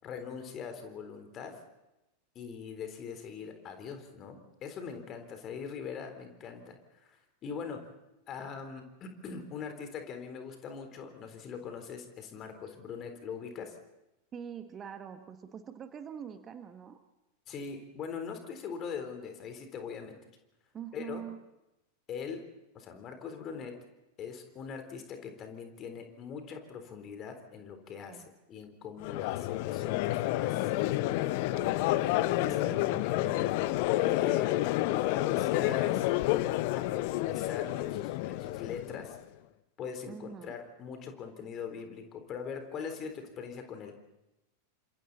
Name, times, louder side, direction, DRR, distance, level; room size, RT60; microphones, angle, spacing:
voice 1, 0.0-1.6 2.4-6.8 7.0-7.9 8.3-13.8 17.5-20.2 20.9-21.2 22.1-22.5 22.7-23.8 24.2-28.2 28.5-31.1 31.9-32.0 32.4-33.5 33.9-36.1 36.8-39.2 39.8-43.9, left 6 dB, 30° left, 7 dB, 3.8 m, -41 dB
voice 2, 14.3-17.0 20.7-21.4 28.0-28.3 31.5-33.7 40.1-40.5, right 8 dB, 25° right, 9 dB, 1.4 m, -45 dB
Crowd, 29.0-39.2, left 16 dB, 45° left, 0.9 m, -29 dB
28.5 x 26.5 x 4.2 m, 0.93 s
figure-of-eight pair, 90°, 0 cm